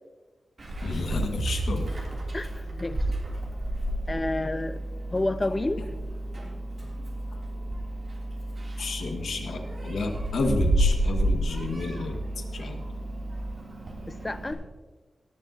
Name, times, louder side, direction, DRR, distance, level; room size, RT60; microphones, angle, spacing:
Meow, 0.6-14.5, right 1 dB, 40° right, 3.0 m, -32 dB
voice 1, 0.8-1.9 8.8-12.2 12.5-12.8, left 3 dB, 75° left, 3 dB, 1.8 m, -31 dB
sound 1, 1.6-13.6, right 1 dB, 10° right, 2.1 m, -36 dB
voice 2, 2.3-3.1 4.1-4.8 5.1-5.8 14.1-14.6, left 2 dB, 20° left, 13 dB, 0.5 m, -29 dB
18.5 x 13.0 x 2.9 m, 1.3 s
wide cardioid pair, 180°, 0 cm